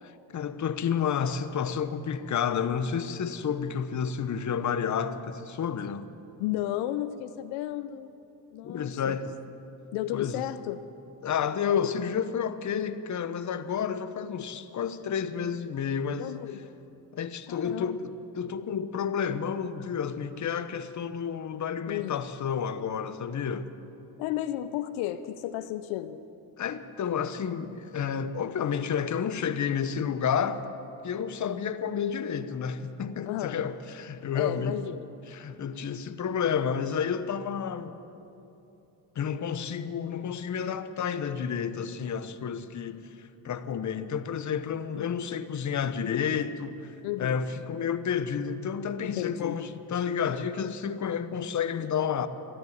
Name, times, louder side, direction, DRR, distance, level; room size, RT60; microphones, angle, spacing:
voice 1, 0.0-6.1 8.6-9.3 10.1-10.4 11.2-16.3 17.1-23.7 26.6-30.6 31.0-34.8 35.3-38.0 39.1-52.3, left 7 dB, 40° left, 1.0 m, -30 dB
voice 2, 6.4-8.1 8.5-9.2 9.9-10.8 16.2-16.8 17.5-18.0 21.9-22.2 24.2-26.3 33.3-33.6 34.3-35.1 47.0-47.4 49.2-49.6, left 13 dB, 80° left, 0.7 m, -33 dB
13.5 x 11.5 x 9.5 m
supercardioid pair, 75°, 47 cm